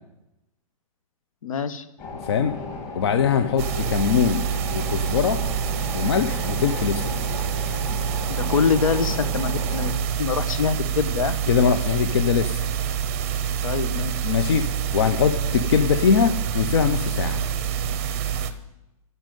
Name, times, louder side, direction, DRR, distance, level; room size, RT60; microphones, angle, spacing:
voice 1, 1.4-1.8 8.3-11.4 13.6-14.1, left 6 dB, 70° left, 12 dB, 1.3 m, -25 dB
sound 1, 2.0-9.9, left 3 dB, 20° left, 2.0 m, -35 dB
voice 2, 2.2-2.6 2.9-4.5 4.7-5.4 5.9-7.2 11.5-12.6 14.2-17.4, left 7 dB, 45° left, 9 dB, 0.7 m, -22 dB
sound 2, 3.6-18.5, right 8 dB, 25° right, 0.7 m, -27 dB
13.0 x 6.4 x 9.2 m, 0.90 s
hypercardioid pair, 175°, 18 cm